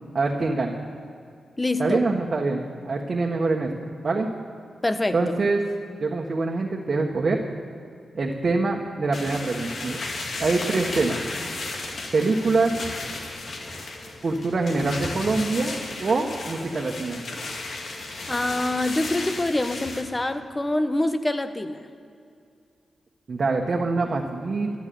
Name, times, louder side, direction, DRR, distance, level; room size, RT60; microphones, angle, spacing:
voice 1, 0.1-0.8 1.8-3.7 4.0-4.3 5.1-5.6 6.0-7.4 8.1-10.0 10.4-11.2 12.1-12.7 14.2-17.2 23.3-24.8, right 3 dB, 55° right, -1 dB, 1.6 m, -24 dB
voice 2, 1.6-2.0 4.8-5.2 18.3-21.9, left 2 dB, 25° left, 10 dB, 1.2 m, -25 dB
sound 1, 9.1-20.0, left 2 dB, 65° left, 2.3 m, -34 dB
14.0 x 11.0 x 7.1 m, 2.4 s
supercardioid pair, 45°, 0 cm